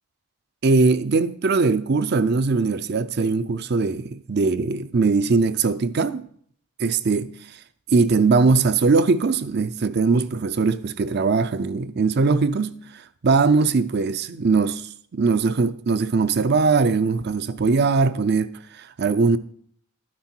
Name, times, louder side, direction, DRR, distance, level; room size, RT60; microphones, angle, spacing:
voice 1, 0.6-6.2 6.8-7.3 7.9-19.4, right 4 dB, 45° right, 0.5 m, -21 dB
12.0 x 9.5 x 4.4 m
head